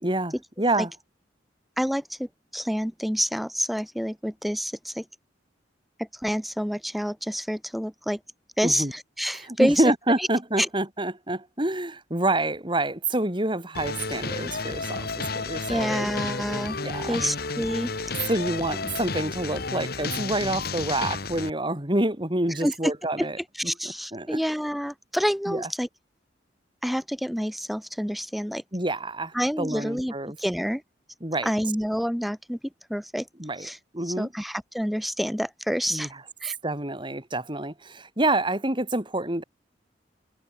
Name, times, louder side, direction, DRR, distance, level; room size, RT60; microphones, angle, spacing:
voice 1, 0.0-0.9 8.6-8.9 9.5-16.1 16.8-17.2 18.3-23.4 23.6-24.4 25.5-25.7 28.7-30.4 31.2-31.5 33.4-33.7 33.9-34.3 35.9-36.1 36.6-39.4, right 2 dB, 25° right, 3.2 m, -27 dB
voice 2, 1.8-5.0 6.0-8.2 8.6-9.8 10.2-10.3 10.6-10.7 15.7-16.8 17.0-18.1 22.6-22.9 23.2-23.3 23.6-25.9 26.8-28.6 29.3-30.8 31.4-32.6 32.9-33.3 33.6-33.8 34.1-36.1 36.4-36.6, equal, ahead, 2.7 m, -28 dB
sound 1, 13.7-21.5, left 3 dB, 55° left, 2.2 m, -32 dB
head